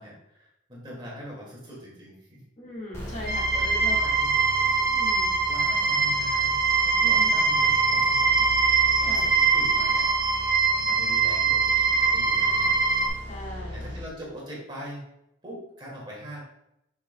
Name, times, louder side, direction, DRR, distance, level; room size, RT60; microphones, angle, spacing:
voice 1, 0.0-2.4 3.2-4.3 5.1-6.6 6.8-10.1 10.8-12.7 13.7-15.0 15.4-16.4, equal, 25° right, -4 dB, 2.1 m, -42 dB
voice 2, 2.6-4.0 4.9-5.4 7.0-7.3 9.0-9.3 13.3-13.8, left 1 dB, 40° left, -4 dB, 1.6 m, -39 dB
sound 1, 2.9-14.0, left 1 dB, 15° left, 1.6 m, -39 dB
sound 2, 3.3-13.1, right 4 dB, 55° right, 0.9 m, -22 dB
8.0 x 5.8 x 2.2 m, 0.81 s
head